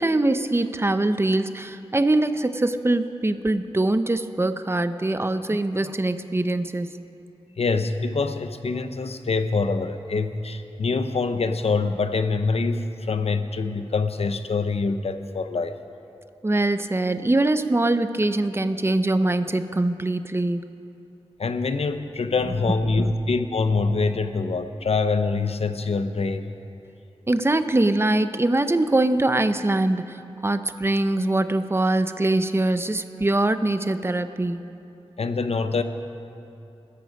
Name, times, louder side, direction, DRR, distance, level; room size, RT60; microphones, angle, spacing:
voice 1, 0.0-7.0 16.4-20.7 23.0-23.1 27.3-34.6, right 2 dB, 25° right, 10 dB, 0.7 m, -23 dB
voice 2, 7.6-15.7 21.4-26.5 35.2-35.8, left 4 dB, 70° left, 9 dB, 0.8 m, -25 dB
19.5 x 13.5 x 5.3 m, 2.8 s
wide cardioid pair, 80°, 11 cm